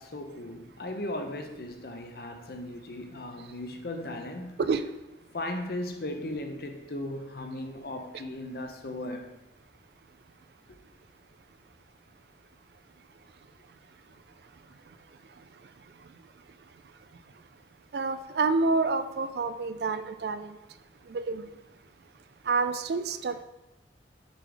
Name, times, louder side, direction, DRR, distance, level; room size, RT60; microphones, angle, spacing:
voice 1, 0.0-4.6 5.3-9.3, left 1 dB, 55° left, 0.7 m, -37 dB
voice 2, 17.9-20.5 21.1-21.4 22.5-23.4, right 4 dB, 60° right, 0.4 m, -28 dB
6.8 x 3.9 x 4.7 m
head